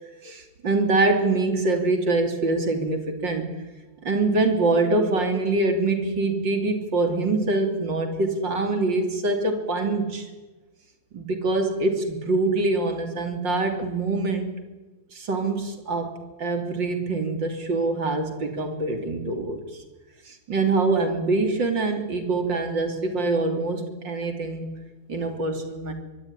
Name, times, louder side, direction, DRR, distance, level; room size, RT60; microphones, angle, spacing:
voice 1, 0.2-3.5 4.0-10.3 11.1-14.5 15.1-19.8 20.3-24.7 25.1-25.9, right 3 dB, 90° right, 5 dB, 3.7 m, -24 dB
25.5 x 22.0 x 9.8 m, 1.2 s
omnidirectional pair, 1.9 m